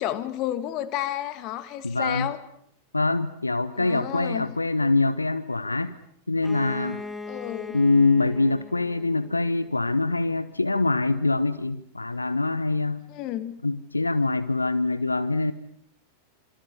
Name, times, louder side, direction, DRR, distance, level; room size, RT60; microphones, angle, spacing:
voice 1, 0.0-2.4 3.8-4.5 7.3-7.8 13.1-13.5, left 12 dB, 40° left, 13 dB, 2.1 m, -31 dB
voice 2, 1.8-2.3 2.9-5.9 6.3-7.0 7.7-13.0 13.6-15.5, left 3 dB, 80° left, 15 dB, 1.0 m, -24 dB
Bowed string instrument, 6.4-10.1, left 3 dB, 5° left, 2.2 m, -40 dB
27.0 x 26.0 x 7.0 m, 0.72 s
figure-of-eight pair, 90°, 0 cm